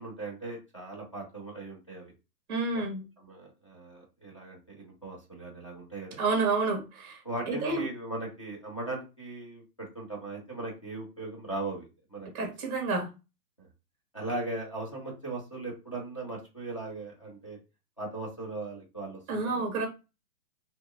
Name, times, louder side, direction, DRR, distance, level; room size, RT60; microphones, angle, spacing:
voice 1, 0.0-2.1 2.7-2.8 3.2-6.2 7.2-12.5 13.6-13.7 14.1-17.6 18.0-19.8, right 2 dB, 25° left, -3 dB, 0.3 m, -39 dB
voice 2, 2.5-3.1 6.2-7.2 7.5-7.9 12.3-13.1 19.3-19.8, right 3 dB, 15° right, 1 dB, 0.7 m, -29 dB
2.6 x 2.2 x 2.5 m, 0.28 s
hypercardioid pair, 155°, 48 cm